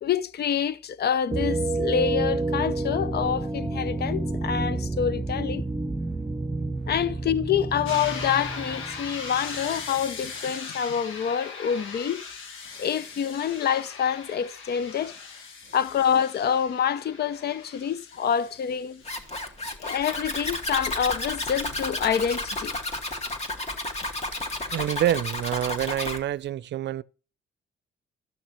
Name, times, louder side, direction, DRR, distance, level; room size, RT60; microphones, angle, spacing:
voice 1, 0.0-5.6 6.9-12.2 12.8-15.1 15.7-19.0 19.8-22.8, left 8 dB, 55° left, 0.7 m, -27 dB
sound 1, 1.3-10.0, right 2 dB, 15° right, 0.9 m, -29 dB
sound 2, 7.9-19.5, left 5 dB, 85° left, 1.4 m, -40 dB
Zipper (clothing), 19.0-26.2, left 2 dB, 35° left, 2.4 m, -32 dB
voice 2, 24.7-27.0, right 12 dB, 60° right, 0.5 m, -27 dB
13.0 x 6.1 x 5.8 m
cardioid pair, 90°, 20 cm